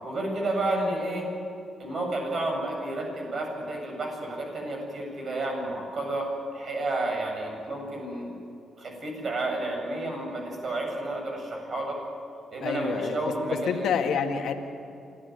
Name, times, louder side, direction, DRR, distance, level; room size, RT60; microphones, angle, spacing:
voice 1, 0.0-1.3 1.8-8.3 8.8-12.0 12.5-13.9, right 2 dB, 55° right, 1 dB, 7.8 m, -31 dB
voice 2, 12.6-14.5, left 7 dB, 80° left, 4 dB, 1.9 m, -28 dB
27.5 x 14.0 x 9.5 m, 2.6 s
supercardioid pair, 60°, 0 cm